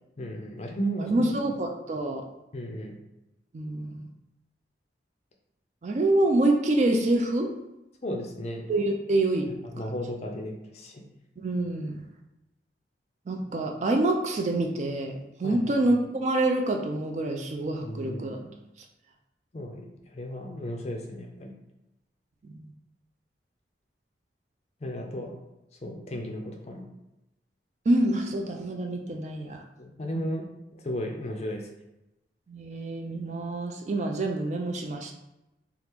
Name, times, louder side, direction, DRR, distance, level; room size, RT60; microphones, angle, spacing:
voice 1, 0.2-1.3 2.5-3.0 8.0-8.7 9.7-11.1 15.4-15.7 17.8-18.5 19.5-21.5 24.8-25.4 25.8-26.9 29.8-30.5 30.7-31.7, equal, 35° left, 2 dB, 0.4 m, -35 dB
voice 2, 1.0-2.2 3.5-4.1 5.8-7.5 8.7-9.5 11.4-12.1 13.3-18.4 22.4-22.7 27.9-29.6 30.1-30.3 32.5-35.1, right 2 dB, 40° right, 3 dB, 0.3 m, -26 dB
3.0 x 2.4 x 3.4 m, 0.92 s
head